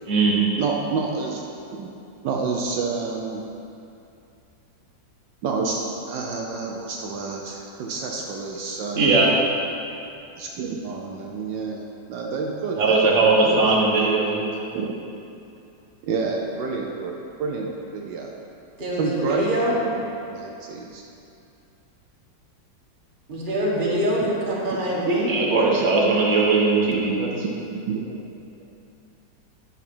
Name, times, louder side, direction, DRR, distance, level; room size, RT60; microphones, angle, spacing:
voice 1, 0.6-1.4 1.8-1.9 2.2-3.4 5.4-9.1 10.4-11.8 12.1-14.0 14.7-14.9 16.0-17.1 17.4-18.3 19.0-21.0 24.2-24.3 24.7-24.8 27.7-28.2, right 4 dB, 75° right, -1 dB, 1.4 m, -29 dB
voice 2, 8.9-9.3 12.8-14.4 25.1-27.3, right 3 dB, 45° right, -3 dB, 1.5 m, -19 dB
voice 3, 18.8-19.8 23.3-25.3, equal, 30° right, -6 dB, 1.7 m, -25 dB
11.0 x 4.4 x 6.0 m, 2.7 s
omnidirectional pair, 2.0 m